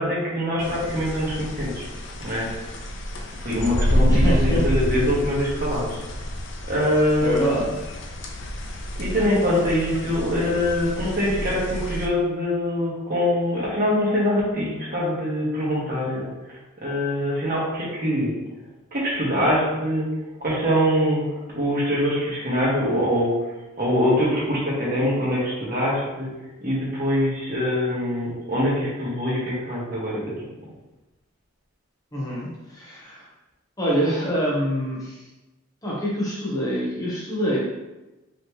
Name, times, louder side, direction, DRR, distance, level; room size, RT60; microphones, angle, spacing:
voice 1, 0.0-1.9 2.2-2.5 3.4-6.0 6.7-7.6 8.9-18.4 18.9-20.1 20.4-21.2 21.5-26.3 26.6-30.4, equal, 45° right, -6 dB, 1.5 m, -24 dB
sound 1, 0.6-12.1, equal, 60° left, 0.6 m, -28 dB
voice 2, 4.1-4.6 7.2-7.7 32.1-33.3 33.8-35.2 35.8-37.6, equal, 15° left, -6 dB, 1.0 m, -25 dB
5.1 x 3.2 x 3.0 m, 1.0 s
head